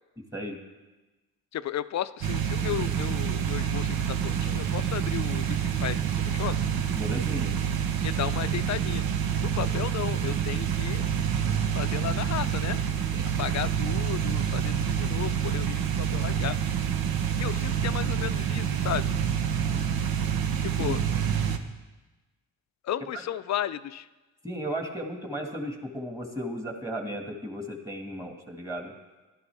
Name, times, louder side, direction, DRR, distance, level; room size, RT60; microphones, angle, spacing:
voice 1, 1.5-6.6 8.0-9.0 9.4-11.1 11.7-12.8 13.4-16.6 17.4-19.1 20.6-21.0 22.8-24.1, left 11 dB, 50° left, 15 dB, 0.5 m, -34 dB
sound 1, 2.2-21.6, right 8 dB, 70° right, 0.9 m, -27 dB
voice 2, 6.9-7.5 13.1-13.3 19.7-19.8 20.8-21.0 24.4-28.9, equal, 10° right, 2 dB, 1.9 m, -35 dB
12.5 x 11.0 x 3.5 m, 1.2 s
supercardioid pair, 55°, 36 cm